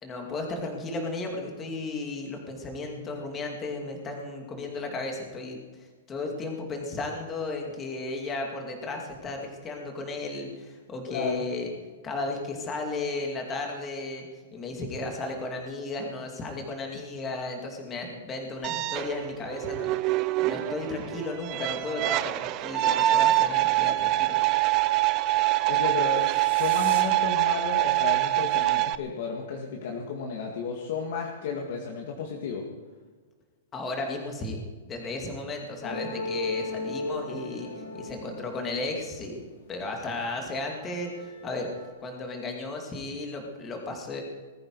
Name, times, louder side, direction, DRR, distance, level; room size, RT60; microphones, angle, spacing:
voice 1, 0.0-5.6 6.1-11.7 12.0-14.3 14.5-20.0 20.4-24.4 33.7-34.6 34.9-37.7 37.9-39.4 39.7-41.7 42.0-44.2, left 2 dB, 15° left, 2 dB, 2.3 m, -34 dB
voice 2, 11.1-11.4 25.4-32.7, left 5 dB, 45° left, 0 dB, 2.0 m, -33 dB
sound 1, 18.6-29.0, right 16 dB, 25° right, 0.4 m, -25 dB
sound 2, 26.1-27.0, right 10 dB, 50° right, 2.3 m, -43 dB
sound 3, 35.8-39.9 40.3-41.9, left 1 dB, 75° left, 4.1 m, -37 dB
20.0 x 14.0 x 4.8 m, 1.5 s
hypercardioid pair, 175°, 0 cm